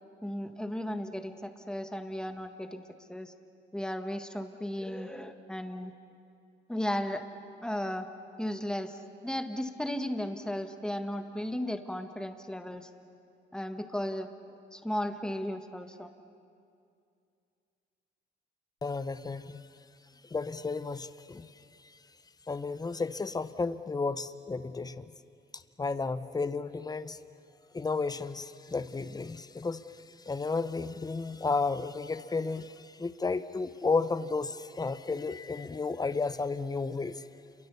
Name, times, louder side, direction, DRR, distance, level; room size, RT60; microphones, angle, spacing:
voice 1, 0.2-2.8 3.1-3.3 3.7-5.9 6.7-7.2 7.6-8.1 8.4-12.9 13.5-14.3 14.7-16.1, left 1 dB, 5° left, 7 dB, 1.7 m, -35 dB
voice 2, 18.8-19.7 20.2-22.0 22.5-25.1 25.5-27.2 27.7-37.3, left 4 dB, 20° left, 13 dB, 0.9 m, -33 dB
28.5 x 23.0 x 7.1 m, 2.5 s
cardioid pair, 90°, 20 cm